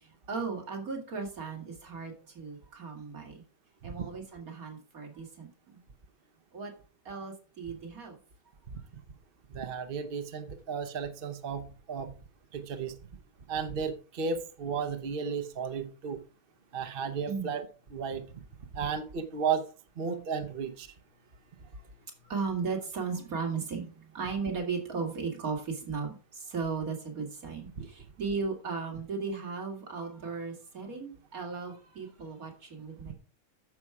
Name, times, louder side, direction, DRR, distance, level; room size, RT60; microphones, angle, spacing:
voice 1, 0.0-3.4 3.8-5.8 6.5-6.7 7.0-8.1 17.3-17.5 22.2-33.1, right 5 dB, 70° right, 3 dB, 2.6 m, -36 dB
voice 2, 9.5-12.1 12.5-12.9 13.5-16.2 16.7-17.7 17.9-18.2 18.7-19.6 20.0-20.9 27.8-27.9 33.1-33.2, right 6 dB, 45° right, 8 dB, 1.0 m, -34 dB
9.6 x 7.1 x 4.8 m, 0.38 s
omnidirectional pair, 1.6 m